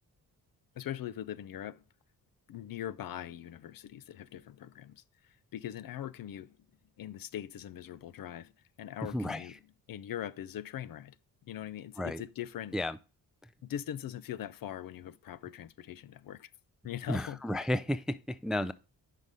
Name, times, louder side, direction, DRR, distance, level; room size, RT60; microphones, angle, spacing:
voice 1, 0.7-1.8 2.5-6.6 7.0-8.5 8.8-9.6 9.9-11.2 11.4-12.8 13.6-16.5 16.8-17.4, left 11 dB, 60° left, 0.5 m, -41 dB
voice 2, 9.1-9.5 12.0-12.2 12.7-13.0 17.1-18.7, left 1 dB, ahead, 0.3 m, -32 dB
5.7 x 5.3 x 4.7 m
cardioid pair, 100°, 38 cm